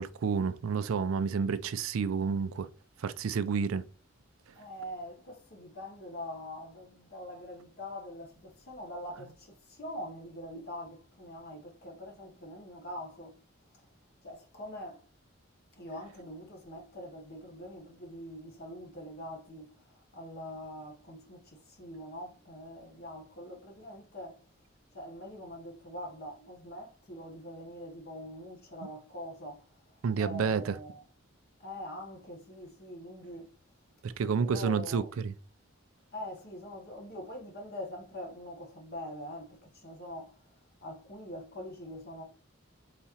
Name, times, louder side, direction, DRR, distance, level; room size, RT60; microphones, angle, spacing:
voice 1, 0.0-2.7 3.0-3.8 30.0-30.8 34.0-35.3, right 6 dB, 85° right, 0.4 m, -30 dB
voice 2, 4.6-13.4 14.2-15.0 15.8-24.4 24.9-31.0 31.6-33.5 34.2-35.1 36.1-40.3 40.8-42.2, left 1 dB, 45° left, 0.9 m, -44 dB
4.1 x 3.6 x 2.8 m
head